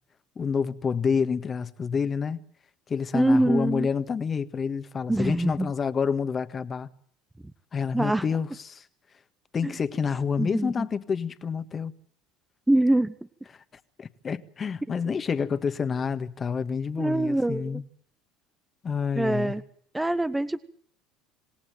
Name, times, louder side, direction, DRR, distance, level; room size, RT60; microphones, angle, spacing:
voice 1, 0.3-2.4 2.9-6.9 7.7-8.8 9.5-11.9 14.0-17.8 18.8-19.5, left 6 dB, 35° left, 1.7 m, -28 dB
voice 2, 3.1-3.9 5.1-5.7 7.9-8.2 9.6-9.7 10.4-10.9 12.7-13.1 17.0-17.8 19.2-19.6 19.9-20.6, right 1 dB, 10° right, 1.1 m, -24 dB
27.0 x 18.0 x 9.2 m
hypercardioid pair, 75°, 0 cm